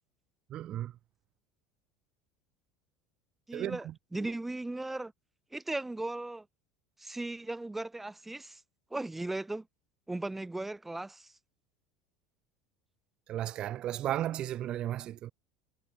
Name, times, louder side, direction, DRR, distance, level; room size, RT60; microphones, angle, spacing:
voice 1, 0.5-0.9 3.5-3.8 4.2-4.3 13.3-15.3, right 12 dB, 40° right, 0.5 m, -34 dB
voice 2, 3.5-5.1 5.5-6.5 7.0-8.6 8.9-9.7 10.1-11.3, right 2 dB, 10° right, 2.9 m, -37 dB
figure-of-eight pair, 70°, 2 cm